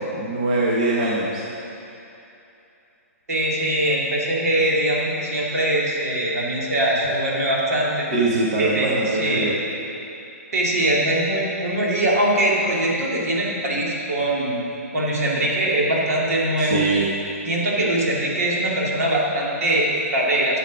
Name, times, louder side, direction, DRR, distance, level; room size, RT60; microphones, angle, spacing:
voice 1, 0.0-1.4 8.1-9.6 16.6-17.1, right 2 dB, 30° right, -4 dB, 1.0 m, -22 dB
voice 2, 3.3-8.1 8.5-8.9 9.2-9.5 10.5-14.6 14.9-16.8 17.4-20.6, right 1 dB, 75° right, -4 dB, 2.5 m, -22 dB
10.5 x 7.3 x 5.1 m, 2.8 s
hypercardioid pair, 175°, 8 cm